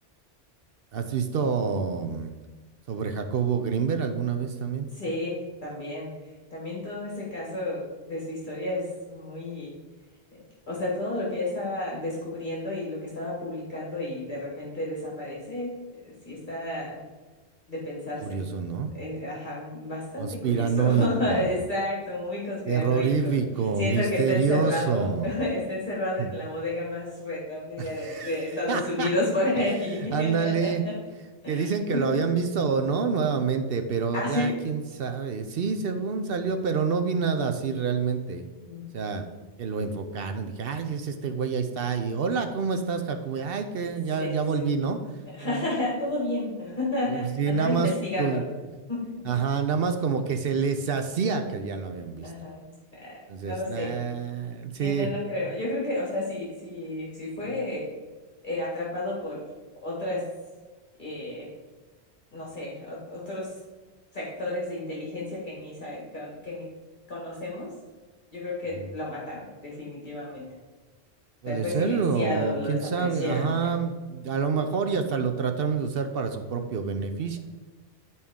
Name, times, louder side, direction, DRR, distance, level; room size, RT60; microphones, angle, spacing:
voice 1, 0.9-2.3 2.9-4.9 18.2-18.9 20.2-21.5 22.7-25.4 26.2-26.3 27.8-28.3 28.7-29.1 29.6-29.7 30.1-30.8 31.5-38.4 38.9-39.2 39.6-45.0 45.4-45.7 47.1-47.9 48.2-48.4 49.2-52.3 53.3-55.1 68.7-68.9 71.4-77.4, right 5 dB, 65° right, 7 dB, 0.8 m, -27 dB
voice 2, 4.9-6.1 6.5-9.7 10.3-17.0 17.7-18.4 18.9-23.4 23.8-31.0 31.4-32.2 34.1-34.5 38.7-38.9 44.2-44.6 45.3-48.4 48.9-49.0 52.2-54.0 54.8-57.9 58.4-59.4 59.8-60.2 61.0-61.5 62.3-63.5 64.1-66.7 67.1-67.7 68.3-70.5 71.4-73.7, left 1 dB, 45° left, -5 dB, 1.7 m, -31 dB
10.5 x 4.3 x 3.6 m, 1.3 s
omnidirectional pair, 1.1 m